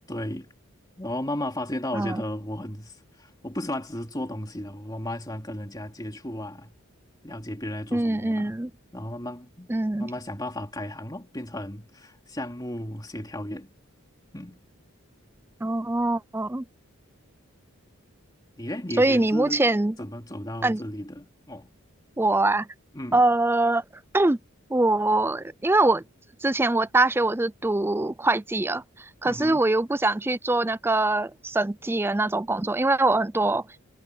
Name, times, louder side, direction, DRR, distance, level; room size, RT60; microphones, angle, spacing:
voice 1, 0.1-0.5 1.0-6.7 7.2-8.6 8.9-13.7 14.3-14.6 18.6-19.7 20.0-21.7 22.9-23.2 29.2-29.7, left 1 dB, 20° left, 2.9 m, -34 dB
voice 2, 7.9-8.7 9.7-10.1 15.6-16.6 19.0-19.9 20.6-20.8 22.2-22.7 23.1-23.8 24.1-24.4 24.7-26.0 26.4-33.6, right 2 dB, 10° right, 0.4 m, -23 dB
head